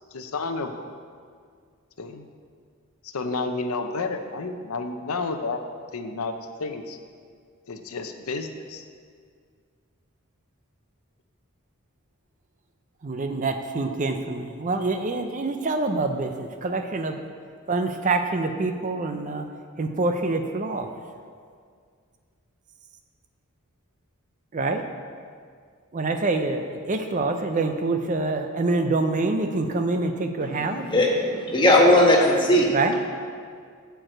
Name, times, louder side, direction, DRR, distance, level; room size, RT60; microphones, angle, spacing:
voice 1, 0.1-0.9 2.0-2.3 3.0-5.6 5.9-7.0 7.7-8.8, left 3 dB, 75° left, 7 dB, 0.6 m, -31 dB
voice 2, 13.0-17.2 17.7-19.5 19.8-20.9 24.5-24.8 25.9-30.9 32.7-33.0, right 3 dB, 35° right, 6 dB, 0.5 m, -26 dB
voice 3, 30.8-32.7, left 1 dB, 20° left, -1 dB, 1.2 m, -18 dB
9.1 x 4.7 x 7.6 m, 2.1 s
head